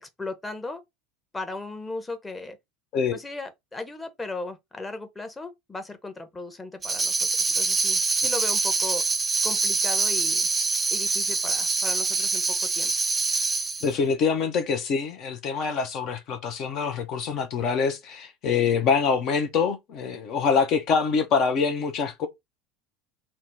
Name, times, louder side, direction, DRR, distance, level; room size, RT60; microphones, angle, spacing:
voice 1, 0.0-0.8 1.3-2.6 3.1-7.2 7.5-9.0 9.4-10.5 10.9-12.4 12.7-12.9, left 2 dB, 15° left, 0.7 m, -36 dB
Tambourine, 6.8-13.9, right 4 dB, 20° right, 0.4 m, -25 dB
voice 2, 13.8-22.3, left 5 dB, 50° left, 0.6 m, -25 dB
2.7 x 2.1 x 3.4 m
hypercardioid pair, 75°, 0 cm